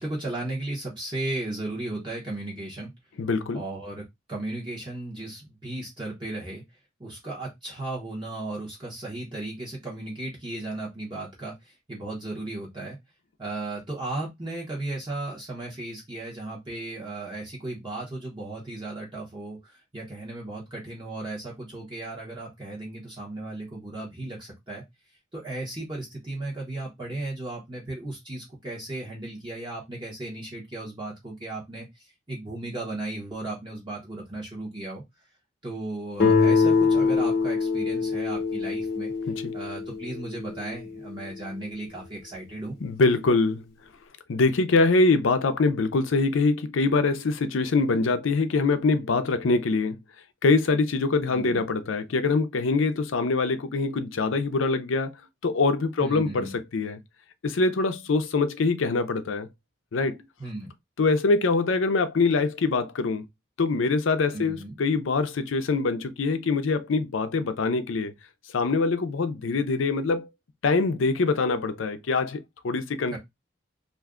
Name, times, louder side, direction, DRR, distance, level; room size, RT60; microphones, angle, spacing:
voice 1, 0.0-2.9 3.5-4.0 4.3-6.6 7.0-13.0 13.4-24.8 25.3-35.0 35.6-39.1 39.5-42.8 51.2-51.6 56.0-56.6 60.4-60.7 64.3-64.8 73.1-73.2, right 2 dB, 25° right, 0.9 m, -35 dB
voice 2, 3.2-3.6 39.3-39.5 42.8-43.6 44.3-50.0 50.4-55.1 55.4-57.0 57.4-59.5 59.9-60.2 61.0-63.2 63.6-68.1 68.5-70.3 70.6-73.2, left 3 dB, 80° left, 0.5 m, -24 dB
Guitar, 36.2-41.0, left 4 dB, 45° left, 0.9 m, -24 dB
2.5 x 2.2 x 3.6 m
head